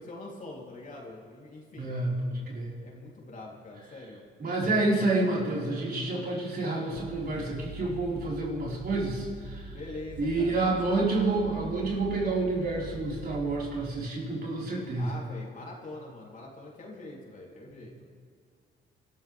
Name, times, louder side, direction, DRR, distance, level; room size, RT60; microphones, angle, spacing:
voice 1, 0.0-1.9 2.8-4.2 9.7-11.0 15.0-18.0, left 2 dB, 40° left, -2 dB, 3.7 m, -44 dB
voice 2, 1.7-2.8 4.4-9.7 10.2-15.1, right 2 dB, 50° right, -5 dB, 5.1 m, -29 dB
sound 1, 6.9-14.0, right 2 dB, 80° right, 4.6 m, -44 dB
29.0 x 13.5 x 3.6 m, 2.2 s
cardioid pair, 90°, 20 cm